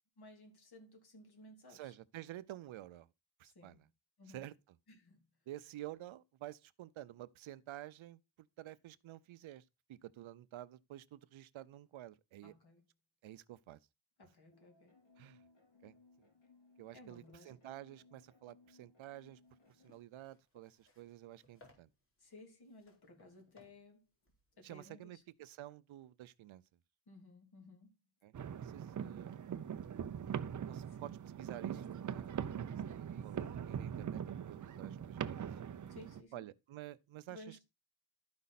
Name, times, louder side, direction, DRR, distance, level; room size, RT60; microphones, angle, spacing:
voice 1, 0.2-1.9 3.4-3.8 4.2-4.5 4.9-5.2 12.4-12.8 14.2-14.9 16.9-17.6 22.2-24.1 24.6-25.2 27.1-27.9 30.9-31.1 35.9-36.4 37.3-37.6, left 2 dB, 55° left, 3.0 m, -57 dB
voice 2, 1.7-3.1 3.4-3.9 4.3-4.5 5.5-12.5 13.2-13.8 15.2-15.4 15.8-15.9 16.8-19.4 19.8-21.9 24.6-26.6 28.2-29.4 30.6-31.1 31.4-32.4 32.9-34.2 34.5-35.5 36.3-37.6, right 14 dB, 85° right, 0.7 m, -51 dB
sound 1, 14.5-20.0, left 3 dB, 70° left, 4.5 m, -66 dB
sound 2, 19.3-25.3, left 2 dB, 25° left, 3.5 m, -69 dB
sound 3, 28.3-36.2, right 8 dB, 40° right, 0.6 m, -42 dB
12.5 x 5.3 x 4.1 m
wide cardioid pair, 150°, 47 cm